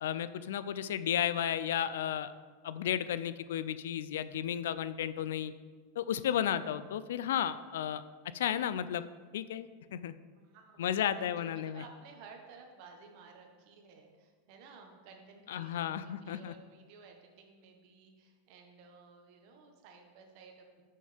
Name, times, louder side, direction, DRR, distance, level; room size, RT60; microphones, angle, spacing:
voice 1, 0.0-2.3 2.6-5.5 6.0-8.0 8.3-9.0 9.3-10.1 10.8-11.8 15.5-16.5, left 10 dB, 85° left, 14 dB, 0.4 m, -33 dB
voice 2, 10.3-10.8 11.2-20.8, right 4 dB, 55° right, 3 dB, 1.4 m, -55 dB
11.0 x 6.5 x 3.5 m, 1.5 s
supercardioid pair, 145°, 0 cm